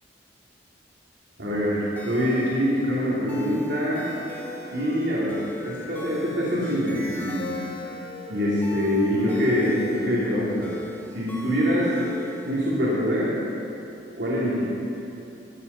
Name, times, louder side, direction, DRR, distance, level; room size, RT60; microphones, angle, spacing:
voice 1, 1.4-4.1 4.7-5.4 5.6-7.6 8.3-10.7 11.1-11.9 12.4-13.4 14.2-14.7, equal, 80° right, -8 dB, 2.8 m, -24 dB
sound 1, 2.0-12.6, left 1 dB, 10° left, 1.4 m, -42 dB
Wind instrument woodwind instrument, 3.5-6.7 7.1-10.3, left 2 dB, 65° left, 2.4 m, -41 dB
13.0 x 8.5 x 6.8 m, 2.9 s
head